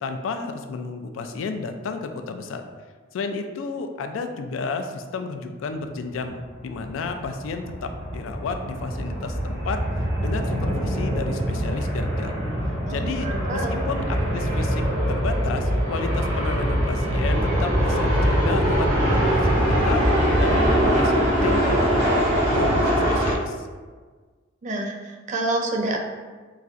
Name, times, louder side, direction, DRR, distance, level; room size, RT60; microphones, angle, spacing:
voice 1, 0.0-2.6 3.1-9.8 10.2-12.3 12.9-20.1 20.4-23.7, left 4 dB, 75° left, 6 dB, 0.3 m, -32 dB
sound 1, 6.2-23.3, equal, 70° right, 1.2 m, -23 dB
voice 2, 12.9-13.8 24.6-26.0, right 2 dB, 40° right, 2 dB, 0.4 m, -28 dB
4.0 x 2.4 x 2.4 m, 1.4 s
head